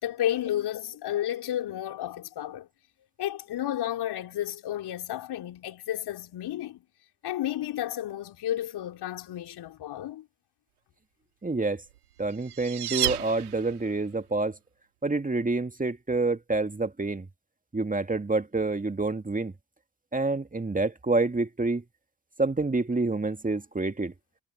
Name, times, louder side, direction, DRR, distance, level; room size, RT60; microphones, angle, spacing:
voice 1, 0.0-2.7 3.2-6.8 7.2-10.2, left 12 dB, 60° left, 4.8 m, -32 dB
voice 2, 11.4-11.8 12.2-14.6 15.0-17.3 17.7-19.5 20.1-21.8 22.4-24.1, right 3 dB, 20° right, 2.4 m, -27 dB
sound 1, 11.9-14.0, right 13 dB, 80° right, 2.8 m, -32 dB
figure-of-eight pair, 45°, 45 cm